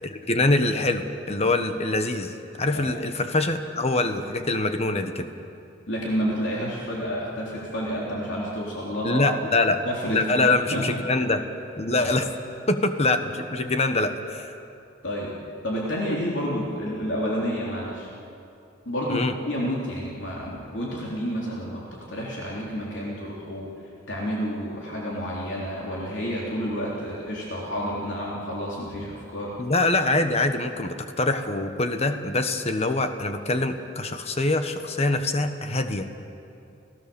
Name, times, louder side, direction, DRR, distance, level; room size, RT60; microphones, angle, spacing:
voice 1, 0.0-5.3 9.0-9.8 10.1-11.5 11.8-12.3 12.7-14.5 19.1-19.3 29.6-36.1, left 2 dB, 30° left, 8 dB, 1.3 m, -24 dB
voice 2, 5.9-9.3 9.8-10.8 12.0-12.1 15.0-15.3 15.6-18.1 18.9-23.7 24.1-29.5, equal, 65° left, -4 dB, 3.6 m, -30 dB
30.0 x 17.0 x 7.1 m, 2.6 s
head